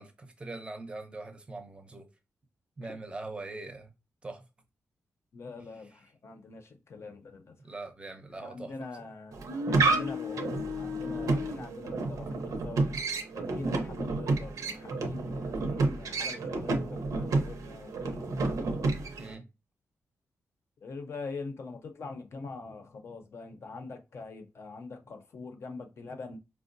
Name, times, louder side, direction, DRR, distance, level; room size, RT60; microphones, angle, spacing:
voice 1, 0.0-2.1 2.8-3.9 4.2-4.4 5.8-6.0 7.6-8.7 19.2-19.5, right 2 dB, 20° right, 0.6 m, -42 dB
voice 2, 5.3-7.6 8.4-9.4 9.7-13.0 13.3-18.5 20.8-26.4, left 3 dB, 55° left, 0.6 m, -43 dB
sound 1, 9.3-19.3, right 2 dB, 80° right, 0.6 m, -30 dB
4.5 x 2.0 x 2.5 m
wide cardioid pair, 125°, 6 cm